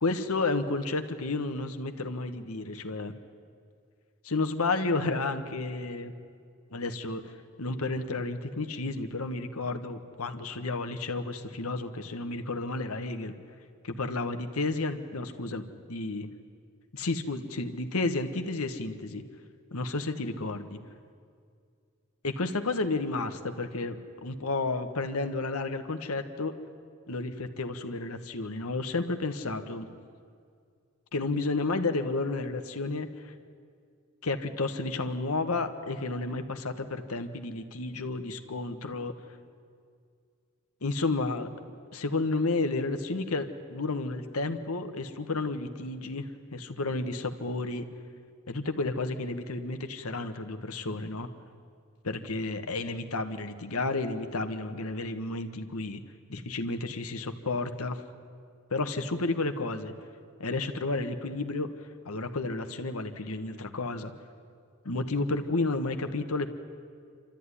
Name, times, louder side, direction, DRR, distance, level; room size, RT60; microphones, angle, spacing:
voice 1, 0.0-3.1 4.2-6.1 6.7-7.3 7.6-13.3 13.8-15.6 15.9-16.3 16.9-19.2 19.7-20.8 22.2-26.5 27.1-29.9 31.1-33.3 34.2-39.1 40.8-41.5 41.9-47.9 48.5-51.3 52.0-56.0 56.3-58.0 58.7-59.9 60.4-61.7 62.0-64.1 64.8-66.5, left 3 dB, 85° left, 7 dB, 1.4 m, -31 dB
27.5 x 13.5 x 9.8 m, 2.2 s
head